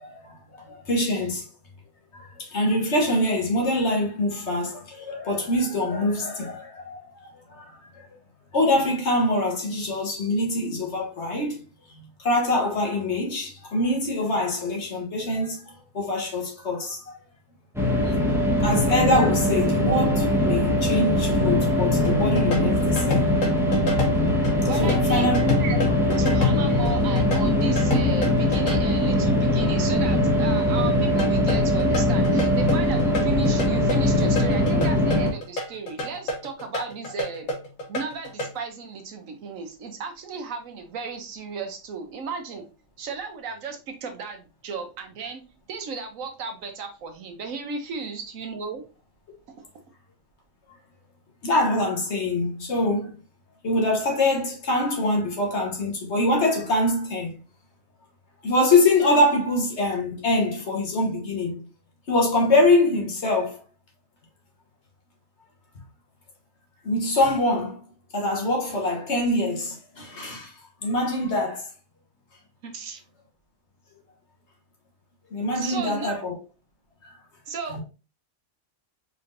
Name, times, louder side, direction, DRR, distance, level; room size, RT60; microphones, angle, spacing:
voice 1, 0.0-1.5 2.1-8.1 8.5-11.6 11.9-17.0 18.0-18.1 18.6-23.3 24.8-25.4 51.4-53.1 53.6-57.4 58.4-61.6 62.1-63.6 66.8-67.8 68.1-70.5 70.8-71.7 75.3-76.4 77.7-77.8, left 2 dB, 55° left, 1.4 m, -24 dB
sound 1, 17.8-35.3, left 1 dB, ahead, 0.8 m, -21 dB
sound 2, 22.0-28.8 31.2-38.6, left 2 dB, 85° left, 1.6 m, -30 dB
voice 2, 24.6-25.8 26.2-37.5 37.9-42.7 43.0-45.4 45.7-48.8 72.6-73.0 75.5-76.2 77.5-77.8, right 5 dB, 75° right, 1.2 m, -34 dB
4.5 x 3.7 x 2.5 m
omnidirectional pair, 1.5 m